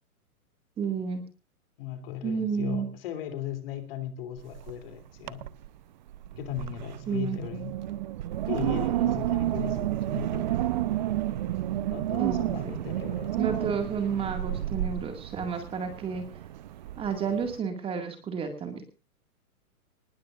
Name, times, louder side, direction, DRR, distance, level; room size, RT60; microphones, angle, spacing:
voice 1, 0.8-1.2 2.2-2.9 7.1-7.4 12.2-12.8 13.4-16.2 17.0-18.8, right 6 dB, 10° right, 6 dB, 2.0 m, -31 dB
voice 2, 1.8-5.5 6.4-7.7 8.5-10.7 11.9-13.3, left 10 dB, 40° left, 9 dB, 3.1 m, -37 dB
Wind, 4.4-4.9 5.2-5.7 6.1-17.6, right 13 dB, 30° right, 0.7 m, -31 dB
24.0 x 20.0 x 2.5 m, 0.34 s
hypercardioid pair, 160°, 44 cm